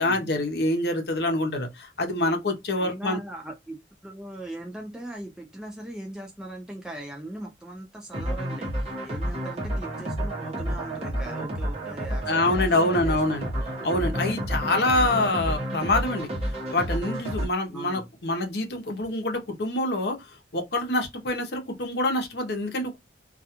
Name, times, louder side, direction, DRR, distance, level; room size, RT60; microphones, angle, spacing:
voice 1, 0.0-3.2 12.3-13.5 13.8-20.2 20.5-23.0, left 2 dB, 60° left, 0.7 m, -26 dB
voice 2, 2.8-13.2 13.6-14.3 14.9-15.3 17.7-18.1, right 1 dB, 5° right, 0.3 m, -40 dB
sound 1, 8.1-17.5, equal, 35° right, 0.9 m, -30 dB
2.3 x 2.2 x 2.8 m
head